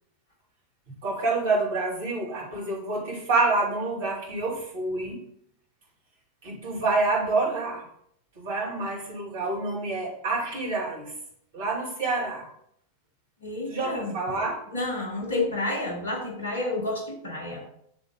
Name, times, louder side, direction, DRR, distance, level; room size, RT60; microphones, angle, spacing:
voice 1, 1.0-5.2 6.4-7.8 8.3-11.1 11.5-12.5 13.7-14.6, right 3 dB, 55° right, -3 dB, 3.0 m, -27 dB
voice 2, 13.4-14.1 14.7-17.6, left 2 dB, 70° left, 1 dB, 1.5 m, -30 dB
9.4 x 3.7 x 3.9 m, 0.71 s
figure-of-eight pair, 90°, 0 cm